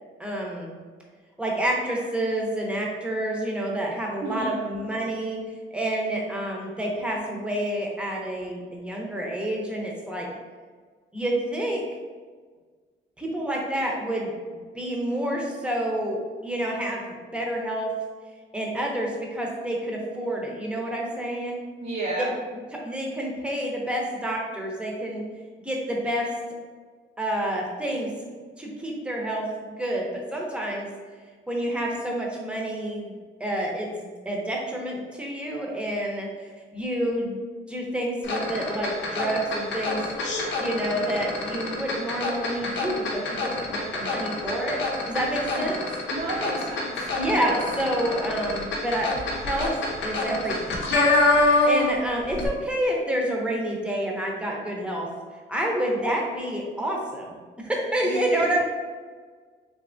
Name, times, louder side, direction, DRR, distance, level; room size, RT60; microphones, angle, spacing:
voice 1, 0.2-0.7 1.4-5.4 5.7-10.3 11.1-11.8 13.2-17.9 18.5-21.6 22.7-25.2 25.6-26.3 27.2-28.1 28.6-30.9 31.5-33.1 33.4-37.4 37.7-40.0 40.6-45.8 47.2-50.9 51.7-55.1 55.5-57.3 57.6-58.6, right 1 dB, 5° right, -2 dB, 0.7 m, -28 dB
voice 2, 21.8-22.3 45.6-45.7 46.1-47.1 58.0-58.6, right 2 dB, 55° right, -6 dB, 0.7 m, -31 dB
sound 1, 38.2-52.0 52.3-52.5, left 2 dB, 65° left, 0.7 m, -26 dB
3.4 x 2.8 x 2.6 m, 1.5 s
cardioid pair, 90°, 20 cm